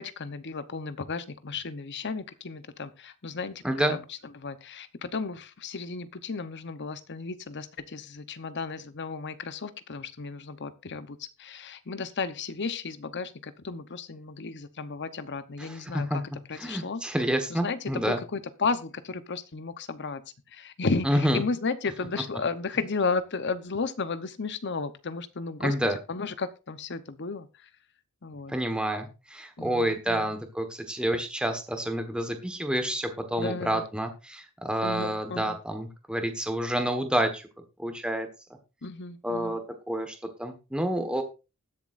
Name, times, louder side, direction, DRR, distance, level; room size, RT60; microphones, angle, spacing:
voice 1, 0.0-3.6 3.9-16.2 16.5-17.0 17.5-20.2 20.5-25.7 26.1-27.7 28.2-28.5 29.6-30.3 33.4-33.9 34.8-35.6 38.8-39.6, left 4 dB, 55° left, 12 dB, 0.9 m, -34 dB
voice 2, 3.6-4.0 15.6-16.2 16.6-18.2 21.0-21.4 25.6-26.0 28.5-37.5 37.8-38.3 39.2-39.6 39.9-41.2, right 1 dB, 5° right, 6 dB, 1.4 m, -28 dB
20.0 x 7.2 x 2.6 m, 0.30 s
head